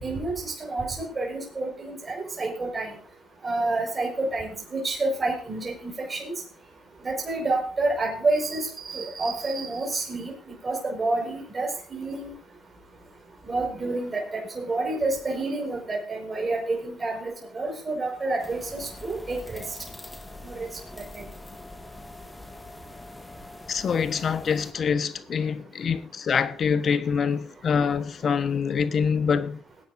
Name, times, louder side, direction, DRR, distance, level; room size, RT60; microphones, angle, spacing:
voice 1, 0.0-2.9 3.4-6.4 7.0-12.3 13.4-19.6 20.4-20.7 21.1-21.2, right 2 dB, 30° right, 5.3 m, -29 dB
sound 1, 18.4-24.7, left 2 dB, 15° left, 2.0 m, -43 dB
voice 2, 23.7-29.6, left 6 dB, 55° left, 1.2 m, -25 dB
21.5 x 10.0 x 2.7 m
cardioid pair, 90°, 0 cm